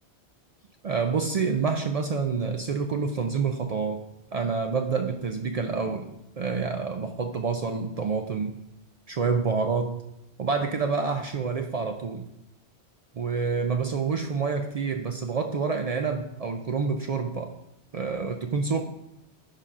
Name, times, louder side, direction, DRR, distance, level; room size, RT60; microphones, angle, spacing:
voice 1, 0.8-4.0 4.3-8.6 9.1-10.0 10.4-12.3 13.2-17.5 17.9-18.8, right 5 dB, 65° right, 4 dB, 0.3 m, -28 dB
10.5 x 5.5 x 2.5 m, 0.85 s
omnidirectional pair, 1.2 m